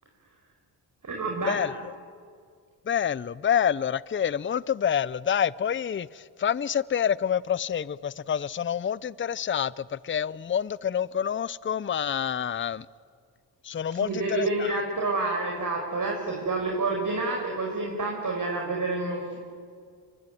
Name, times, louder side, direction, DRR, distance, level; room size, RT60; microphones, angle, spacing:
voice 1, 1.0-1.6 14.0-19.4, right 3 dB, 40° right, 5.6 m, -28 dB
voice 2, 2.9-12.9 13.6-14.7, left 8 dB, 25° left, 0.6 m, -27 dB
24.5 x 24.5 x 9.4 m
supercardioid pair, 55°, 46 cm